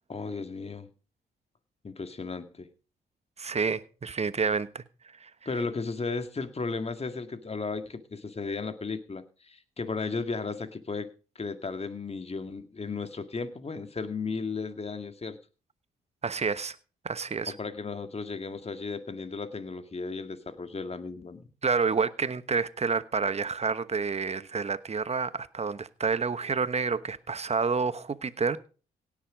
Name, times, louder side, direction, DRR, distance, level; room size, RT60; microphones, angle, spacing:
voice 1, 0.1-0.9 1.8-2.7 5.5-11.1 11.4-15.4 17.5-21.5, left 4 dB, 35° left, 9 dB, 1.9 m, -35 dB
voice 2, 3.4-4.8 5.2-5.3 16.2-16.8 17.0-17.5 21.6-28.6, right 5 dB, 35° right, 15 dB, 1.1 m, -29 dB
17.5 x 7.6 x 5.1 m, 0.36 s
supercardioid pair, 50°, 19 cm